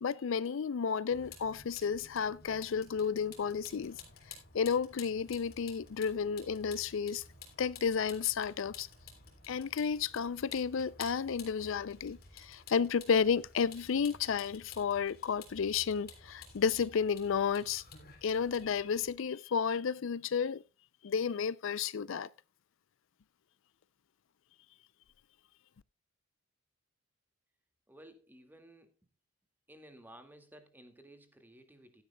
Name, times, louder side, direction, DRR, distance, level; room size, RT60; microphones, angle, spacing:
voice 1, 0.0-4.0 4.3-7.2 7.6-8.9 9.5-17.8 18.2-20.6 21.0-22.3, left 6 dB, 65° left, 0.4 m, -32 dB
Vehicle, 1.1-19.1, left 5 dB, 45° left, 3.4 m, -53 dB
voice 2, 27.9-28.9 29.7-32.0, right 1 dB, 10° right, 2.0 m, -55 dB
16.0 x 11.5 x 2.2 m
head